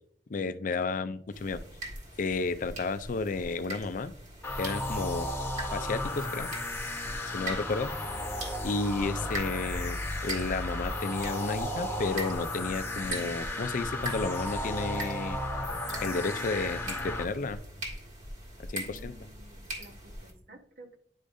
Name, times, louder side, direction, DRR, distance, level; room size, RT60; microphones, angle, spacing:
voice 1, 0.3-1.6 2.2-4.1 4.6-5.3 5.7-6.8 7.3-7.9 8.6-15.4 16.0-17.6 18.7-19.1, left 3 dB, 50° left, 12 dB, 0.4 m, -32 dB
sound 1, 1.3-20.3, right 1 dB, 45° right, 1.9 m, -42 dB
sound 2, 4.4-17.2, left 1 dB, 15° left, 1.2 m, -34 dB
sound 3, 7.8-14.8 15.4-17.9, equal, 10° right, 1.0 m, -51 dB
voice 2, 18.8-21.0, equal, 60° right, 5 dB, 1.1 m, -53 dB
10.0 x 4.9 x 2.6 m, 0.66 s
head